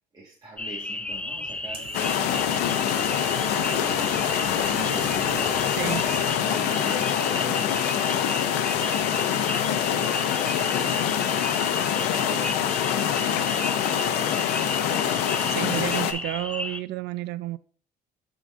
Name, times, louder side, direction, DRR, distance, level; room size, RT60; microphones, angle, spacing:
voice 1, 0.1-3.5 4.5-5.6 6.2-9.3 9.7-11.7 12.3-12.9, right 2 dB, 25° right, 1.4 m, -43 dB
sound 1, 0.6-16.8, left 2 dB, 5° left, 0.4 m, -33 dB
sound 2, 1.1-6.5, right 5 dB, 60° right, 1.8 m, -42 dB
sound 3, 1.9-16.1, left 10 dB, 90° left, 0.6 m, -25 dB
voice 2, 5.8-6.1 15.4-17.6, right 17 dB, 80° right, 0.4 m, -31 dB
11.5 x 3.9 x 2.4 m
cardioid pair, 110°, 17 cm